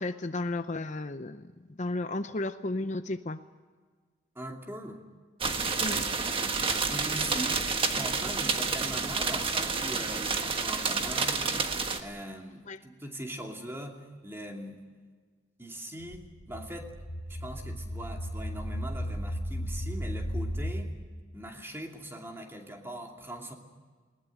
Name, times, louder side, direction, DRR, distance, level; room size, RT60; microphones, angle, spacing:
voice 1, 0.0-1.4 1.8-3.4 5.8-6.1 12.7-12.8, left 2 dB, 40° left, 10 dB, 0.7 m, -33 dB
voice 2, 4.3-5.0 6.6-11.5 12.0-14.8 15.6-16.9 17.3-20.9 21.3-23.5, right 1 dB, 15° right, 2 dB, 2.6 m, -41 dB
sound 1, 5.4-12.0, right 4 dB, 30° right, 1.5 m, -29 dB
sound 2, 16.0-20.8, equal, 75° left, 2.1 m, -35 dB
21.0 x 19.5 x 9.4 m, 1.5 s
head